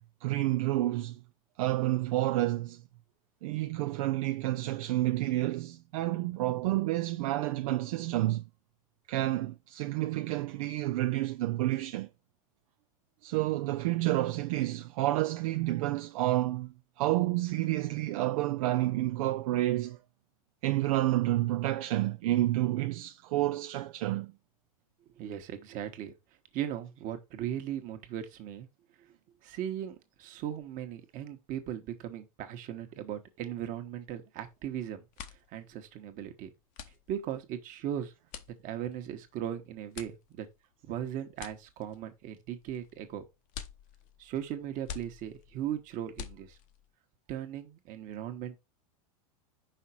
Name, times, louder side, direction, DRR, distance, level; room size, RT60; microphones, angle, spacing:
voice 1, 0.2-1.2 1.6-2.8 3.4-8.4 9.1-12.1 13.2-20.0 20.6-24.3, right 16 dB, 70° right, 0.5 m, -29 dB
voice 2, 25.2-26.1 26.5-28.7 29.4-35.0 35.5-36.5 37.1-38.1 38.6-40.5 40.8-43.2 44.2-46.6 47.3-48.6, right 10 dB, 45° right, 1.4 m, -38 dB
sound 1, 34.4-34.7 35.0-46.9, left 9 dB, 45° left, 0.9 m, -48 dB
5.7 x 4.5 x 4.4 m
supercardioid pair, 120°, 18 cm